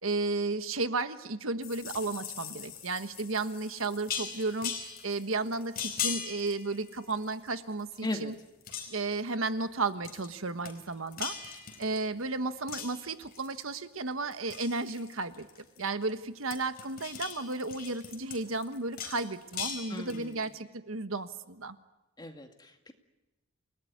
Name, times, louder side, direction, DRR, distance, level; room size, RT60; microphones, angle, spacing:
voice 1, 0.0-8.3 8.9-11.4 11.8-15.5 15.8-21.8, right 3 dB, 75° right, 10 dB, 1.4 m, -33 dB
sound 1, 1.6-7.5 7.8-8.3 8.6-9.2 10.0-10.3 10.6-12.2 12.7-13.7 14.1-16.1 16.4-20.4, left 7 dB, 45° left, 4.5 m, -40 dB
voice 2, 8.0-8.3 19.9-20.3 22.2-22.9, left 1 dB, 20° left, 4 dB, 2.2 m, -37 dB
29.0 x 19.5 x 9.6 m, 1.0 s
head